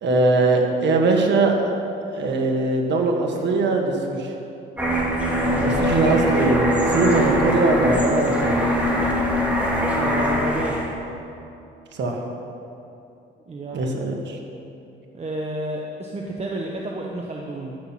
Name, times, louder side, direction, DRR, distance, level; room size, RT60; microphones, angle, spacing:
voice 1, 0.0-1.7 2.1-4.3 5.4-8.7 11.9-12.2 13.7-14.4, right 3 dB, 65° right, 1 dB, 1.6 m, -21 dB
sound 1, 4.8-11.0, equal, 5° right, 2.2 m, -22 dB
voice 2, 9.9-10.8 13.5-13.9 15.1-17.8, right 2 dB, 30° right, -1 dB, 1.1 m, -31 dB
12.5 x 6.0 x 7.7 m, 2.8 s
cardioid pair, 90°, 20 cm